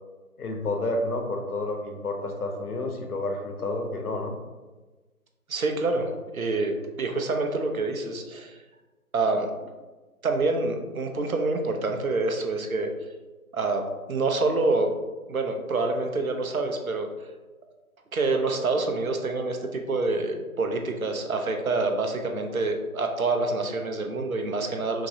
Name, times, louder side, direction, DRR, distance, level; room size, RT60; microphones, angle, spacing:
voice 1, 0.4-4.3, left 2 dB, 80° left, 3 dB, 0.9 m, -30 dB
voice 2, 5.5-8.6 9.1-9.5 10.2-12.9 13.5-13.8 14.1-14.9 15.3-17.1 18.1-25.1, right 3 dB, 70° right, 4 dB, 0.7 m, -27 dB
5.9 x 2.0 x 2.6 m, 1.2 s
figure-of-eight pair, 165°, 44 cm